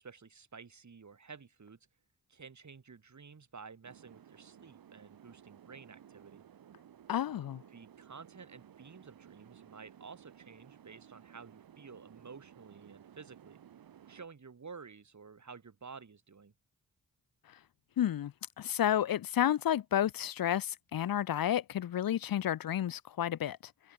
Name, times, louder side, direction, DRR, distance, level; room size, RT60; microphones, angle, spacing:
voice 1, 0.0-1.8 2.3-6.4 7.7-13.6 14.1-16.5, right 5 dB, 55° right, 3.3 m, -52 dB
sound 1, 3.8-14.3, right 9 dB, 85° right, 2.5 m, -57 dB
voice 2, 7.1-7.6 18.0-23.6, left 11 dB, 80° left, 0.9 m, -31 dB
cardioid pair, 40°, 34 cm